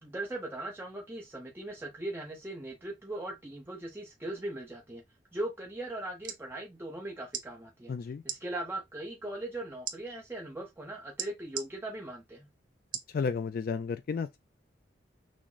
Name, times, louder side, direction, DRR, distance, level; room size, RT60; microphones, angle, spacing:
voice 1, 0.0-5.0 5.3-7.9 8.2-12.5, right 1 dB, 10° right, 0.7 m, -39 dB
sound 1, 6.0-6.4 7.3-7.5 8.2-8.4 9.8-10.0 11.2-11.7 12.9-13.1 13.7-13.8, right 9 dB, 45° right, 0.8 m, -36 dB
voice 2, 7.9-8.2 13.1-14.4, left 5 dB, 50° left, 0.3 m, -32 dB
6.1 x 2.1 x 3.8 m
head